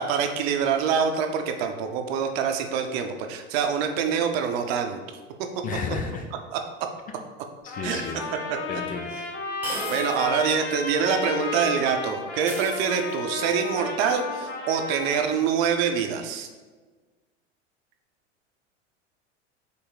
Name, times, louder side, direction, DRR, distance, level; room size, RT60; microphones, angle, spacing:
voice 1, 0.0-5.2 6.5-6.6 7.8-8.0 8.5-8.6 9.9-16.5, right 7 dB, 55° right, 5 dB, 0.7 m, -25 dB
voice 2, 5.6-6.3 7.6-8.2 8.7-9.1, left 5 dB, 25° left, 3 dB, 0.4 m, -32 dB
Trumpet, 7.7-15.4, left 3 dB, 65° left, 1.0 m, -33 dB
sound 1, 8.2-8.3 9.6-10.3 10.7-10.8 12.5-13.4, right 1 dB, 5° right, 1.0 m, -36 dB
5.5 x 2.0 x 3.9 m, 1.3 s
hypercardioid pair, 95°, 36 cm